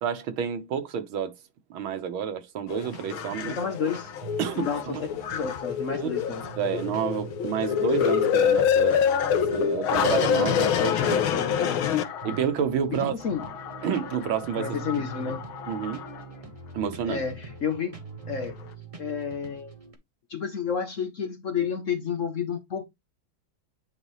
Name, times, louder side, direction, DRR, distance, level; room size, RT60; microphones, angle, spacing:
voice 1, 0.0-1.3 1.7-3.6 4.4-5.0 6.0-6.1 6.6-9.0 9.5-11.2 12.2-13.2 13.8-14.7 15.2-15.3 15.7-16.0 16.7-17.2, right 8 dB, 85° right, 1.9 m, -29 dB
sound 1, 2.7-12.6 13.2-16.2 16.8-16.9, left 8 dB, 85° left, 1.8 m, -26 dB
sound 2, 2.8-19.9, right 4 dB, 20° right, 1.0 m, -43 dB
voice 2, 3.5-4.1 4.6-6.4 10.8-12.0 13.0-13.5 14.6-15.4 17.0-18.0 18.3-18.7 19.0-19.7 20.3-22.8, left 6 dB, 55° left, 0.9 m, -31 dB
9.5 x 4.0 x 3.1 m
omnidirectional pair, 2.2 m